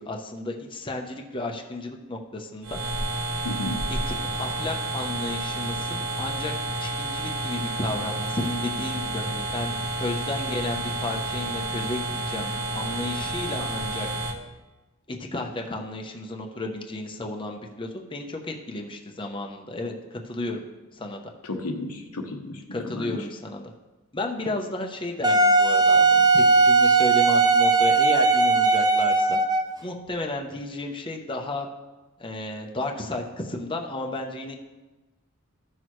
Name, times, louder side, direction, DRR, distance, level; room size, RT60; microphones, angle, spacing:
voice 1, 0.0-3.1 3.9-6.5 6.8-14.1 15.1-20.6 20.9-21.3 22.7-23.7 24.1-29.4 29.8-31.7 32.2-34.6, left 2 dB, 25° left, 1 dB, 0.8 m, -33 dB
sound 1, 2.6-14.3, right 2 dB, 60° right, 1.3 m, -30 dB
voice 2, 3.4-3.8 21.5-23.2, left 1 dB, 85° left, 3 dB, 1.1 m, -33 dB
Wind instrument woodwind instrument, 25.2-29.8, right 4 dB, 20° right, 0.5 m, -18 dB
14.5 x 6.2 x 3.1 m, 1.1 s
head